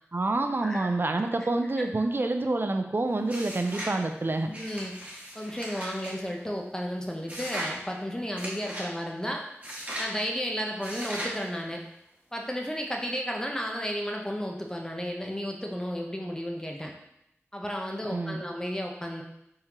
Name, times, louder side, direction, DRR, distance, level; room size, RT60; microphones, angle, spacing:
voice 1, 0.1-4.5 18.1-18.4, right 2 dB, 45° right, 6 dB, 0.4 m, -27 dB
sound 1, 3.3-4.0 4.5-6.1 7.3-7.8 8.4-8.9 9.6-10.1 10.8-11.4, right 1 dB, 30° right, 1.3 m, -37 dB
voice 2, 4.5-4.9 5.3-9.4 10.0-11.8 12.3-16.9 17.5-19.2, equal, 15° left, 1 dB, 0.8 m, -33 dB
4.3 x 3.7 x 3.0 m, 0.81 s
wide cardioid pair, 50°, 5 cm